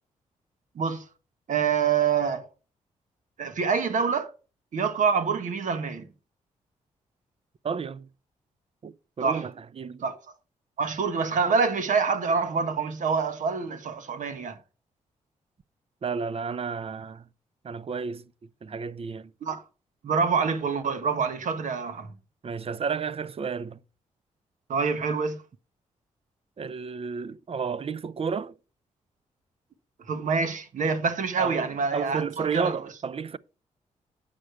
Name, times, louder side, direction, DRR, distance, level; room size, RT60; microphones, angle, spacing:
voice 1, 1.5-2.5 3.4-4.3 4.7-6.1 9.2-9.4 10.0-10.2 10.8-14.6 19.4-19.6 20.0-22.1 24.7-25.4 30.1-32.7, right 5 dB, 70° right, 1.5 m, -26 dB
voice 2, 7.6-8.1 8.8-10.0 16.0-17.3 17.6-18.3 18.6-19.3 22.4-23.8 26.6-28.6 31.4-33.4, right 6 dB, 45° right, 0.6 m, -32 dB
8.8 x 6.3 x 4.6 m
cardioid pair, 60°, 14 cm